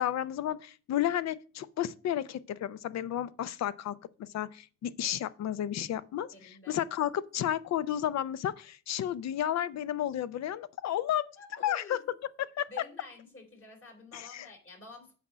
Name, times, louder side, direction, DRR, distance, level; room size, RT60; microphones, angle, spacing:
voice 1, 0.0-12.0 12.4-12.7 14.1-14.5, left 11 dB, 60° left, 0.6 m, -32 dB
voice 2, 6.3-6.8 11.4-12.2 12.7-15.1, left 2 dB, 45° left, 3.6 m, -49 dB
8.2 x 4.3 x 6.2 m
cardioid pair, 90°, 30 cm